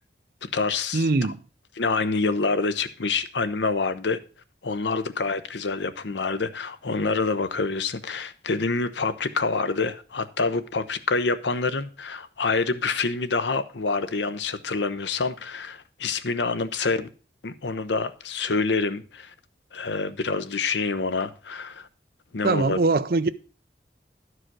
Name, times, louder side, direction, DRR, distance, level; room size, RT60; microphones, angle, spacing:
voice 1, 0.4-1.1 1.8-4.2 4.6-17.1 17.4-19.3 19.7-21.9 22.3-22.8, left 4 dB, 90° left, 0.8 m, -27 dB
voice 2, 0.9-1.4 22.4-23.3, right 3 dB, 55° right, 0.5 m, -22 dB
11.5 x 4.9 x 6.0 m
head